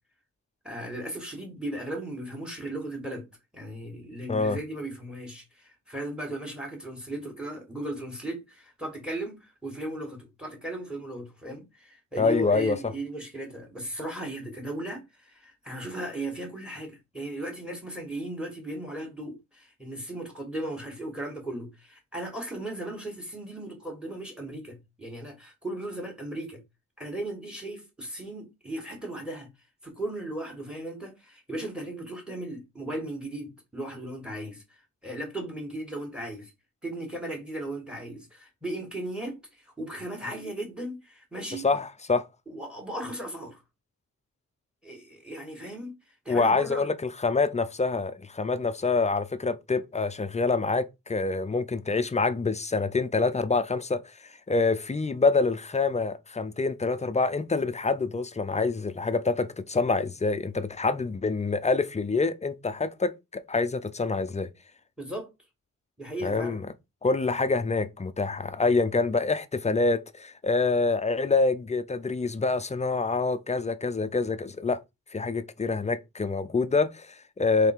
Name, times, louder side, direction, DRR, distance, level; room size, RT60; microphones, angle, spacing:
voice 1, 0.6-3.3 3.5-26.6 27.0-29.5 29.8-34.6 35.0-36.5 36.8-39.4 39.6-41.7 42.5-43.6 44.8-46.0 46.2-46.9 65.0-65.3 66.0-66.6, right 1 dB, 5° right, 1.7 m, -36 dB
voice 2, 12.2-12.9 41.5-42.3 46.3-54.0 54.5-64.5 66.2-66.7 67.0-74.8 75.1-77.7, left 3 dB, 20° left, 0.4 m, -26 dB
3.7 x 3.3 x 4.4 m
wide cardioid pair, 125°, 33 cm